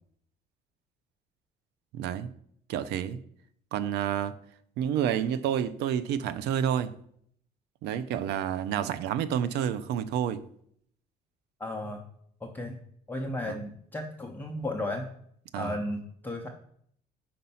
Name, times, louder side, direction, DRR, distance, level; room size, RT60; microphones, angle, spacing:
voice 1, 1.9-2.3 2.7-3.2 3.7-4.3 4.8-6.9 7.8-10.4 13.4-13.6 15.5-15.8, right 9 dB, 85° right, 0.5 m, -29 dB
voice 2, 11.6-12.0 12.4-12.8 13.1-15.1 15.6-16.5, left 1 dB, 10° left, 0.6 m, -34 dB
5.2 x 4.3 x 5.5 m
cardioid pair, 110°, 17 cm